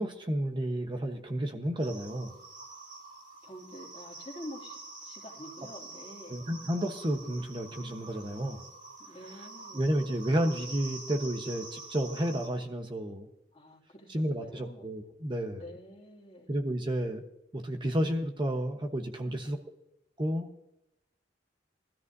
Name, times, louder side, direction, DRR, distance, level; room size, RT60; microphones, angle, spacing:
voice 1, 0.0-2.4 6.3-8.7 9.7-13.3 14.1-15.6 16.5-17.2 17.5-19.6 20.2-20.5, right 1 dB, 25° right, 4 dB, 1.1 m, -31 dB
sound 1, 1.8-12.5, right 3 dB, 45° right, 3.9 m, -47 dB
voice 2, 3.4-6.4 9.0-9.9 13.5-14.9 15.5-16.5 19.2-19.5, left 1 dB, 35° left, 0 dB, 2.6 m, -47 dB
21.0 x 13.5 x 2.7 m, 0.86 s
head